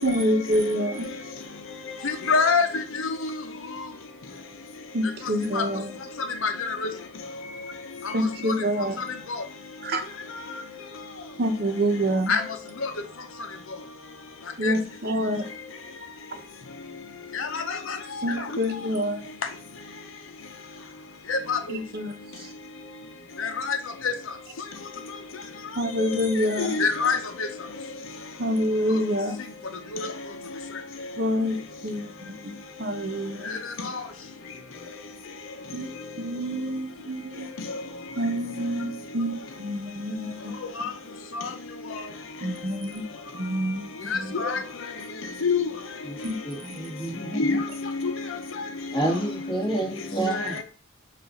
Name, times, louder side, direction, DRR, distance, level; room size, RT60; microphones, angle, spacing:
voice 1, 0.0-1.1 4.9-5.9 8.1-9.0 9.8-10.1 11.4-12.3 14.6-15.5 16.3-16.4 18.2-19.3 21.7-22.5 25.8-26.8 28.4-29.4 31.2-32.5 32.8-33.6 35.7-37.5 38.2-40.6 42.4-43.1 43.3-44.4 46.2-46.4 46.6-46.8, equal, 50° right, 0.9 m, -27 dB
voice 2, 2.0-2.7 5.5-5.6 6.4-6.8 12.3-12.4 14.6-14.7 17.3-17.8 21.3-21.6 23.4-23.8 24.0-24.1 26.6-27.2 44.3-44.6 45.4-45.7 47.4-47.6 48.0-48.1 50.3-50.5, left 5 dB, 80° left, 0.7 m, -23 dB
voice 3, 46.4-47.6 48.9-50.6, right 1 dB, 25° left, 1.9 m, -29 dB
7.2 x 2.6 x 5.2 m
head